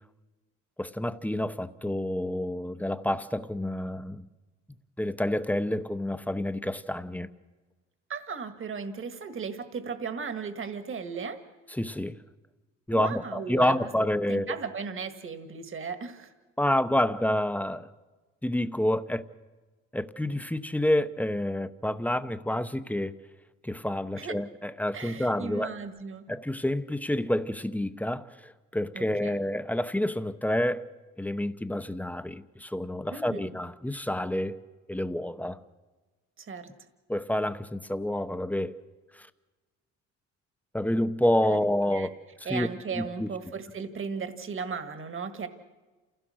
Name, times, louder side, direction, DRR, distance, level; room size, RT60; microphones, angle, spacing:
voice 1, 0.8-4.3 5.0-7.3 11.7-12.2 12.9-14.5 16.6-17.9 18.4-19.2 19.9-23.1 23.6-25.7 26.3-30.8 31.2-34.6 34.9-35.6 37.1-38.8 39.1-39.3 40.7-42.1 42.4-43.3, left 1 dB, 5° left, 0.8 m, -28 dB
voice 2, 8.1-11.4 12.9-13.9 14.3-16.3 24.2-24.4 24.9-26.3 28.9-29.4 33.1-33.5 36.4-36.7 41.4-41.6 41.9-42.1 42.5-45.5, right 5 dB, 45° right, 1.8 m, -36 dB
28.5 x 16.5 x 6.3 m
cardioid pair, 90°, 30 cm